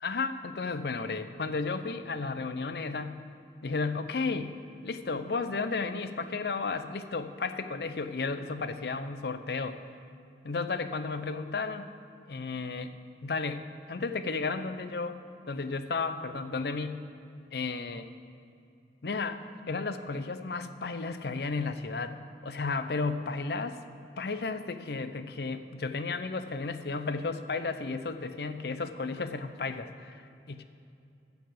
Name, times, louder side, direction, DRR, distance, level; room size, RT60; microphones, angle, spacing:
voice 1, 0.0-3.2 3.6-4.5 4.8-9.8 10.4-11.9 12.3-12.9 13.2-13.6 13.9-15.2 15.5-17.0 17.5-18.1 19.0-23.8 24.2-30.2 30.5-30.6, left 4 dB, 65° left, 10 dB, 0.6 m, -33 dB
13.0 x 4.8 x 7.6 m, 2.6 s
head